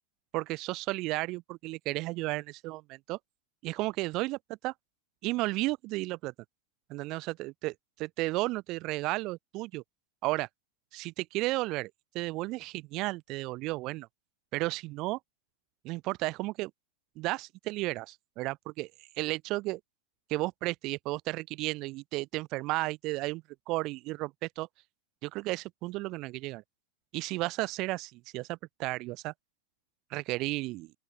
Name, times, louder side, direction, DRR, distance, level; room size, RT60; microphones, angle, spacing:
voice 1, 0.3-3.2 3.6-4.7 5.2-6.3 6.9-9.8 10.2-10.5 10.9-14.1 14.5-15.2 15.8-16.7 17.2-18.9 19.2-19.8 20.3-24.7 25.2-26.6 27.1-29.3 30.1-30.9, right 21 dB, 40° right, 6.3 m, -33 dB
open air
figure-of-eight pair, 90°, 0 cm